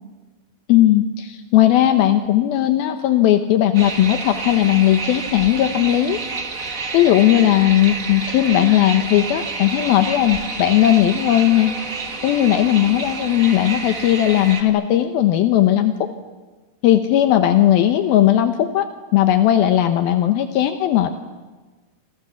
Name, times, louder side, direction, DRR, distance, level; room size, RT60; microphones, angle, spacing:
voice 1, 0.7-6.2 6.9-11.7 12.0-16.1 16.8-18.9 19.1-21.1, left 12 dB, 75° left, 7 dB, 2.9 m, -17 dB
sound 1, 3.7-14.6, right 4 dB, 35° right, 1.5 m, -29 dB
28.0 x 27.0 x 7.2 m, 1.3 s
omnidirectional pair, 4.4 m